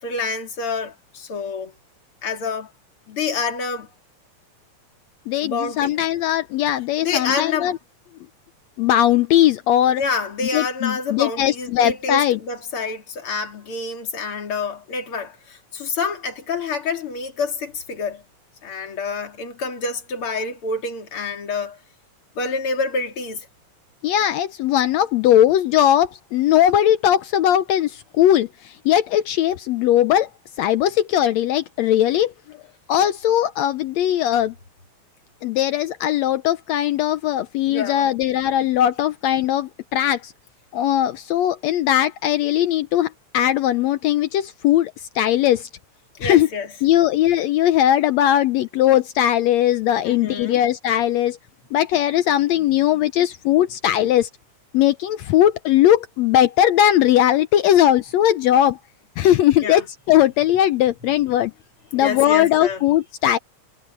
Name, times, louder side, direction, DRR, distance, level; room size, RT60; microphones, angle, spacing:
voice 1, 0.0-1.7 2.2-2.7 3.1-3.9 5.4-5.9 7.0-7.8 9.9-18.2 18.6-21.8 22.4-23.5 37.7-38.1 46.2-46.7 50.0-50.6 59.6-59.9 61.9-62.8, left 4 dB, 45° left, 3.4 m, -27 dB
voice 2, 5.3-7.7 8.8-10.0 10.5-12.4 24.0-27.9 28.2-28.5 28.9-30.3 30.6-32.3 32.9-34.5 35.4-40.3 40.7-43.1 43.3-45.7 46.2-46.5 46.8-51.4 51.7-54.3 54.7-58.8 59.2-61.5 61.9-63.4, left 12 dB, 75° left, 1.7 m, -19 dB
omnidirectional pair, 3.5 m